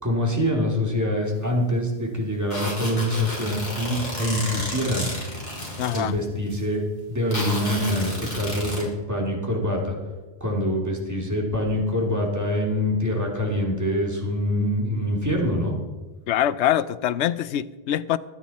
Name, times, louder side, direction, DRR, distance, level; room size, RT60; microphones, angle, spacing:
voice 1, 0.0-5.1 5.9-10.0 10.4-15.7, left 1 dB, 15° right, -1 dB, 2.6 m, -25 dB
sound 1, 2.5-6.0 6.5-6.6 7.3-8.8, left 1 dB, 40° left, 4.0 m, -32 dB
voice 2, 5.8-6.1 16.3-18.2, left 11 dB, 85° left, 16 dB, 0.9 m, -24 dB
23.0 x 9.0 x 4.2 m, 1.2 s
omnidirectional pair, 1.1 m